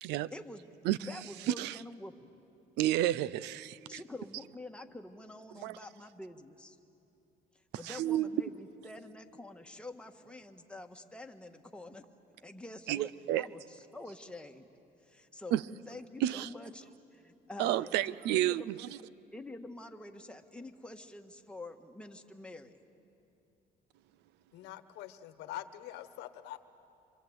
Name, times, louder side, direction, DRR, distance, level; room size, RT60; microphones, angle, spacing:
voice 1, 0.3-2.3 3.9-6.8 7.5-12.0 12.4-14.7 15.0-15.6 15.9-18.7 19.3-22.7 24.6-24.7, left 2 dB, 5° left, 4 dB, 1.6 m, -47 dB
voice 2, 2.8-3.8 5.6-5.8 7.9-8.3 12.9-13.4 15.5-15.6 16.2-16.5 17.6-18.6, right 13 dB, 85° right, 19 dB, 0.6 m, -30 dB
voice 3, 24.5-26.6, left 13 dB, 90° left, 11 dB, 1.2 m, -44 dB
27.0 x 25.5 x 8.1 m, 2.7 s
cardioid pair, 110°, 17 cm